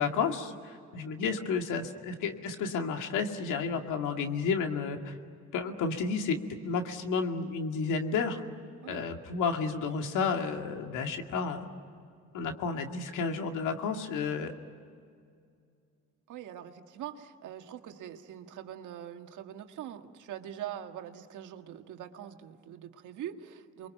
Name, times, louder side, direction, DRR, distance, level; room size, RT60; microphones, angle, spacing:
voice 1, 0.0-5.2 5.5-6.4 6.6-8.4 8.9-11.7 12.3-14.5, left 5 dB, 90° left, 4 dB, 2.3 m, -31 dB
voice 2, 16.3-23.9, right 10 dB, 80° right, 5 dB, 1.8 m, -43 dB
28.5 x 23.0 x 9.1 m, 2.3 s
cardioid pair, 90°, 30 cm